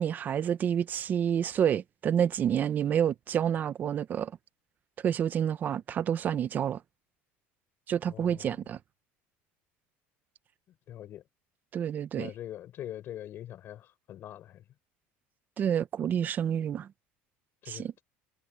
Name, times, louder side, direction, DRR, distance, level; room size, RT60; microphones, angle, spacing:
voice 1, 0.0-4.3 5.0-6.8 7.9-8.8 11.7-12.3 15.6-16.9 17.7-17.9, right 9 dB, 35° right, 0.9 m, -28 dB
voice 2, 8.1-8.6 10.9-11.2 12.1-14.6 17.6-18.0, left 12 dB, 45° left, 5.9 m, -43 dB
supercardioid pair, 125°, 5 cm